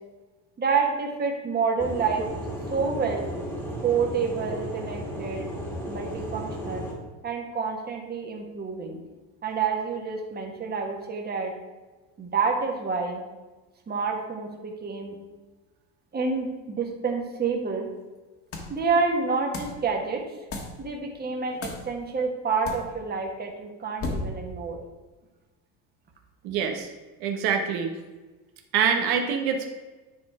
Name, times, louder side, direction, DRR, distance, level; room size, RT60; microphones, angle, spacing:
voice 1, 0.6-2.3 2.7-3.3 3.8-5.5 5.9-6.9 7.2-9.0 9.4-11.5 12.2-13.2 13.9-15.2 16.1-17.9 18.7-20.2 20.8-24.8, right 5 dB, 25° right, 2 dB, 1.3 m, -28 dB
sound 1, 1.8-6.9, equal, 5° left, 1.7 m, -34 dB
sound 2, 18.5-18.8 19.5-19.8 20.5-20.8 21.6-21.9 22.7-22.9 24.0-24.5, left 2 dB, 35° left, 1.4 m, -33 dB
voice 2, 26.4-26.9 27.2-27.9 28.7-29.6, right 7 dB, 70° right, 4 dB, 1.1 m, -25 dB
9.8 x 4.1 x 4.8 m, 1.2 s
cardioid pair, 140°, 39 cm